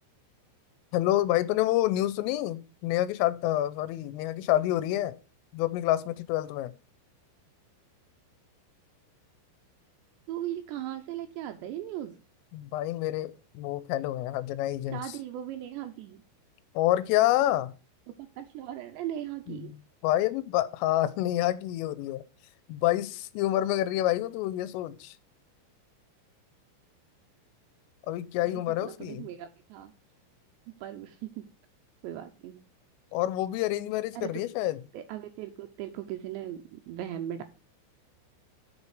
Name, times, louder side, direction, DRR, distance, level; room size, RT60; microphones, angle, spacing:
voice 1, 0.9-5.2 5.5-6.7 12.5-15.0 16.8-17.7 19.5-19.7 20.0-22.2 22.7-25.1 28.1-29.3 33.1-34.8, left 14 dB, 90° left, 3.3 m, -28 dB
voice 2, 10.3-12.2 14.9-16.2 18.2-19.7 28.4-29.9 30.8-31.4 32.0-32.6 34.1-34.4 34.9-37.4, right 12 dB, 80° right, 2.6 m, -38 dB
8.3 x 7.0 x 4.8 m
omnidirectional pair, 5.8 m